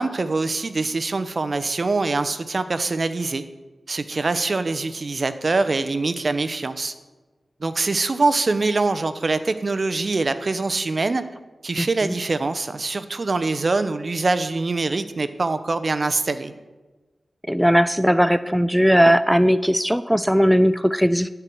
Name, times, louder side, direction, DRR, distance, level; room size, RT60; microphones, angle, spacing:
voice 1, 0.0-3.4 3.9-6.9 7.6-11.2 11.6-16.5, right 3 dB, 55° right, 11 dB, 0.7 m, -24 dB
voice 2, 11.8-12.1 17.5-21.3, equal, ahead, 14 dB, 0.3 m, -18 dB
11.5 x 4.6 x 7.6 m, 1.2 s
cardioid pair, 45°, 0 cm